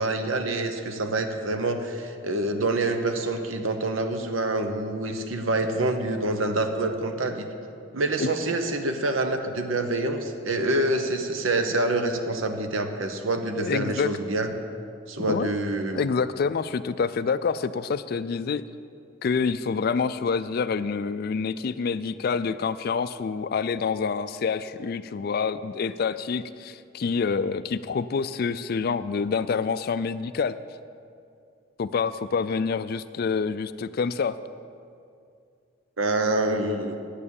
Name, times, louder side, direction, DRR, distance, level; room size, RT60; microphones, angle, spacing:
voice 1, 0.0-7.5 7.9-14.5 15.1-16.1 36.0-37.0, right 2 dB, 80° right, 6 dB, 0.9 m, -26 dB
voice 2, 13.6-14.1 15.3-15.5 15.9-18.6 19.2-30.6 31.8-34.4, left 5 dB, 50° left, 14 dB, 0.3 m, -27 dB
9.8 x 8.5 x 7.1 m, 2.4 s
head